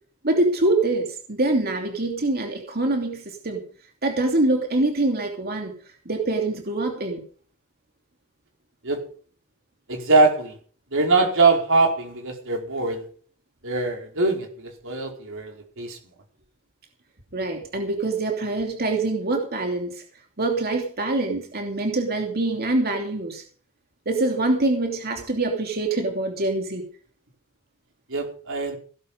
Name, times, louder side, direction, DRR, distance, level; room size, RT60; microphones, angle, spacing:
voice 1, 0.2-3.6 4.0-5.7 6.0-7.2 17.3-20.0 20.4-23.4 24.1-26.9, right 2 dB, 45° right, 2 dB, 2.8 m, -24 dB
voice 2, 9.9-10.6 10.9-13.1 13.6-16.0 28.1-28.8, right 3 dB, 60° right, 2 dB, 4.8 m, -22 dB
17.0 x 11.0 x 5.2 m, 0.44 s
head